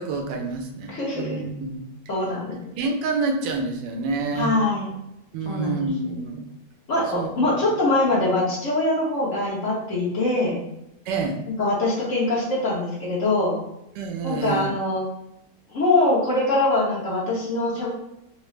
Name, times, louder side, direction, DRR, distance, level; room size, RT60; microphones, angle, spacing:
voice 1, 0.0-1.8 2.8-4.6 5.3-6.5 7.1-7.5 11.1-11.4 13.9-14.7, right 3 dB, 85° right, 4 dB, 1.3 m, -28 dB
voice 2, 0.9-1.4 2.1-2.5 4.4-4.9 5.4-6.1 6.9-10.6 11.6-13.6 14.2-15.0 15.7-17.9, left 2 dB, 50° left, -6 dB, 1.2 m, -23 dB
3.7 x 2.0 x 3.1 m, 0.84 s
omnidirectional pair, 1.9 m